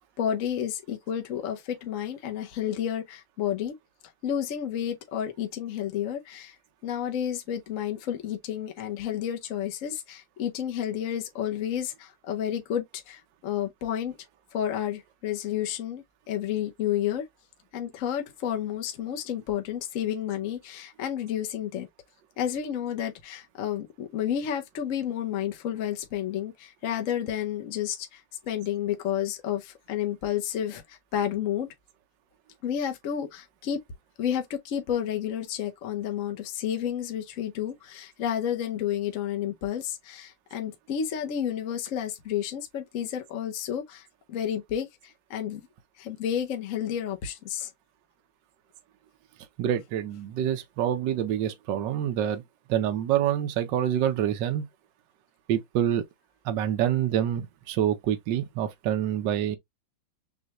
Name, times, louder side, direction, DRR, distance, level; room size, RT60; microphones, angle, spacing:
voice 1, 0.2-3.7 4.2-6.5 6.8-14.2 14.5-17.3 17.7-21.9 22.4-28.2 28.5-31.7 32.6-33.8 34.2-45.6 46.0-47.7, left 10 dB, 60° left, 0.9 m, -31 dB
voice 2, 49.6-52.4 52.7-54.7 55.5-56.0 56.4-59.6, right 10 dB, 70° right, 1.4 m, -26 dB
6.4 x 2.3 x 2.9 m
omnidirectional pair, 2.1 m